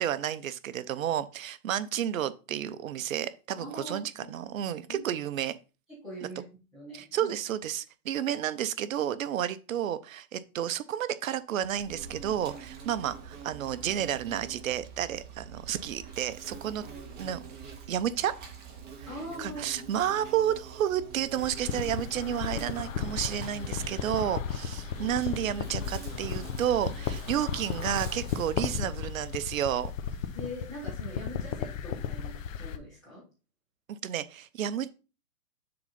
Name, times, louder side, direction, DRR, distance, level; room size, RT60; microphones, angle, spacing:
voice 1, 0.0-5.6 6.9-16.9 17.2-17.4 17.9-18.3 19.4-29.9 33.9-34.9, right 10 dB, 55° right, 0.8 m, -31 dB
voice 2, 3.6-4.4 4.9-5.0 6.0-6.4 6.7-7.3 19.1-19.9 30.3-33.2, equal, ahead, 0.3 m, -42 dB
Insect, 11.6-28.6, right 6 dB, 20° right, 1.8 m, -46 dB
sound 1, 21.4-32.8, left 7 dB, 55° left, 1.0 m, -35 dB
6.9 x 3.9 x 5.5 m
hypercardioid pair, 135°, 47 cm